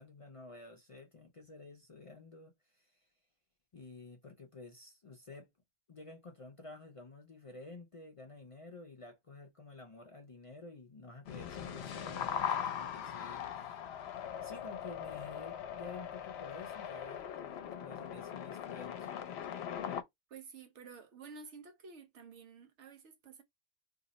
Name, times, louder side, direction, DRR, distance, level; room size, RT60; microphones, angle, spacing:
voice 1, 0.0-3.1 3.7-5.5 5.9-13.8 14.4-19.1, left 3 dB, 45° left, 0.4 m, -51 dB
sound 1, 11.3-20.0, left 9 dB, 70° left, 0.8 m, -40 dB
voice 2, 20.3-23.4, right 5 dB, 90° right, 1.0 m, -51 dB
2.8 x 2.0 x 3.8 m
omnidirectional pair, 1.2 m